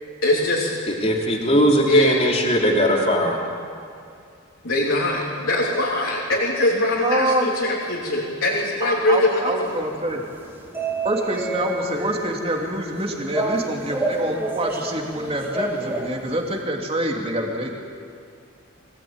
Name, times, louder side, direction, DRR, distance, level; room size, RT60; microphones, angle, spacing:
voice 1, 0.2-0.8 1.9-2.2 4.6-9.7, left 1 dB, 60° left, -5 dB, 3.4 m, -22 dB
voice 2, 0.9-3.5, equal, 30° left, -1 dB, 3.3 m, -19 dB
voice 3, 6.7-7.5 8.8-10.2 11.0-17.7, right 1 dB, 25° right, 0 dB, 3.1 m, -26 dB
sound 1, 9.6-16.6, right 2 dB, 10° right, 2.0 m, -29 dB
24.5 x 18.5 x 9.0 m, 2.4 s
head